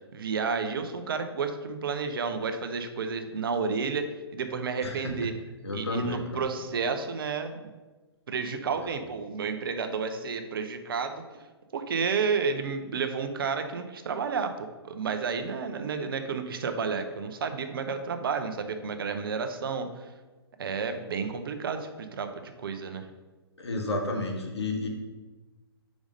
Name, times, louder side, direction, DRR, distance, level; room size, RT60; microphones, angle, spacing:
voice 1, 0.1-5.3 5.7-7.7 8.3-11.2 11.7-20.1 20.6-23.1, right 5 dB, 55° right, 7 dB, 0.8 m, -31 dB
voice 2, 4.8-5.1 5.6-6.4 23.6-24.9, left 2 dB, 80° left, 1 dB, 1.5 m, -31 dB
5.2 x 4.7 x 5.3 m, 1.2 s
figure-of-eight pair, 125°, 14 cm